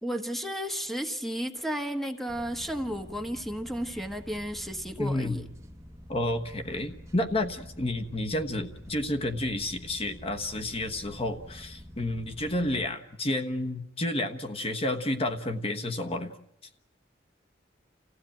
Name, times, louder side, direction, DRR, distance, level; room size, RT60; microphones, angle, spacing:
voice 1, 0.0-5.5, equal, ahead, 5 dB, 1.4 m, -33 dB
sound 1, 2.3-12.9, equal, 15° right, 1.2 m, -48 dB
voice 2, 5.0-5.4 6.1-16.3, left 1 dB, 35° left, 5 dB, 1.3 m, -30 dB
29.5 x 16.0 x 8.9 m, 0.81 s
head